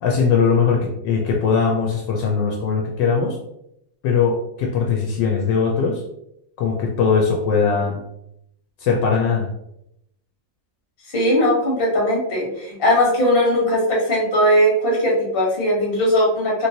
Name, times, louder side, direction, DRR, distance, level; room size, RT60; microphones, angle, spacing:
voice 1, 0.0-3.4 4.0-6.0 6.6-8.0 8.8-9.5, left 5 dB, 75° left, 0 dB, 1.2 m, -20 dB
voice 2, 11.1-16.7, equal, 35° left, -3 dB, 1.0 m, -19 dB
3.1 x 3.0 x 2.7 m, 0.80 s
omnidirectional pair, 2.1 m